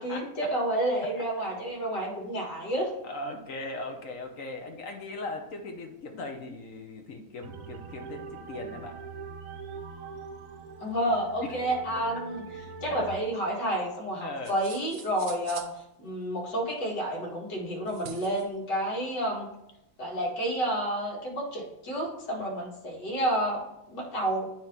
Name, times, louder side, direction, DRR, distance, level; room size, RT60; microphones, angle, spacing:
voice 1, 0.0-2.9 10.8-12.4 12.8-15.6 16.0-19.5 20.0-24.5, right 1 dB, 75° left, -3 dB, 2.5 m, -30 dB
voice 2, 3.0-8.9 11.4-11.5 14.2-14.6 22.4-22.5, left 2 dB, 55° left, 4 dB, 1.1 m, -39 dB
sound 1, 7.4-13.1, right 5 dB, 60° right, 1.0 m, -42 dB
sound 2, 14.4-15.8 17.9-18.5, right 6 dB, 80° right, 1.3 m, -44 dB
9.0 x 3.0 x 5.0 m, 0.85 s
omnidirectional pair, 1.9 m